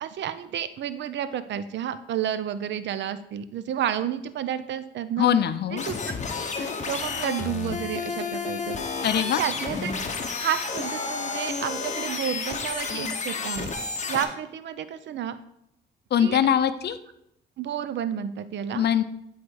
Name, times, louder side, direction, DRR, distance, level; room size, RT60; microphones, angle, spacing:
voice 1, 0.0-5.3 5.7-6.0 6.6-9.9 10.4-15.4 16.2-16.4 17.6-18.9, right 9 dB, 65° right, 13 dB, 0.6 m, -31 dB
voice 2, 5.2-5.8 9.0-9.4 16.1-17.0 18.7-19.0, left 9 dB, 55° left, 12 dB, 0.6 m, -22 dB
sound 1, 5.8-14.2, left 4 dB, 35° left, 1.0 m, -31 dB
9.5 x 4.0 x 4.6 m, 0.78 s
cardioid pair, 90°, 20 cm